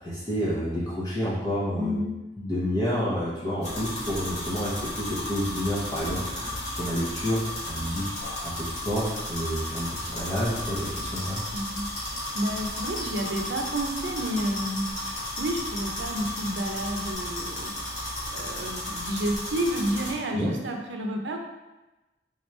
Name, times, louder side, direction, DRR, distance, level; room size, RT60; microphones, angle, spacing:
voice 1, 0.0-2.0 2.4-7.4 7.6-11.4 20.3-20.6, equal, 20° left, -8 dB, 0.7 m, -29 dB
voice 2, 1.8-2.2 11.5-17.7 18.3-21.4, equal, 90° right, 3 dB, 0.5 m, -30 dB
sound 1, 3.6-20.1, left 1 dB, 45° left, 1.4 m, -34 dB
3.5 x 3.0 x 3.2 m, 1.1 s
head